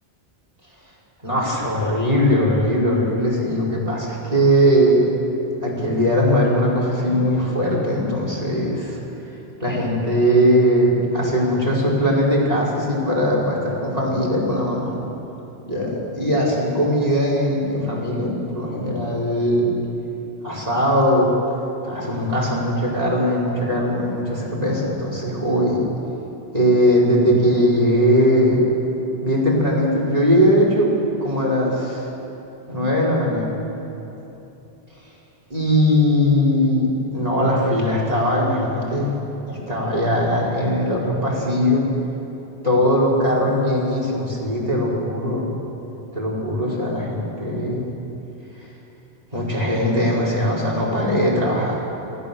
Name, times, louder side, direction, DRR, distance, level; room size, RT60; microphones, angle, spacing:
voice 1, 1.2-5.0 5.6-9.0 9.6-15.0 15.7-19.7 20.4-21.3 21.8-25.8 26.5-28.7 29.2-30.9 31.2-32.1 32.7-33.5 35.5-39.1 39.5-41.9 42.6-45.5 46.1-47.9 49.3-51.8, equal, 40° right, -4 dB, 4.5 m, -20 dB
26.5 x 16.5 x 6.9 m, 3.0 s
omnidirectional pair, 1.0 m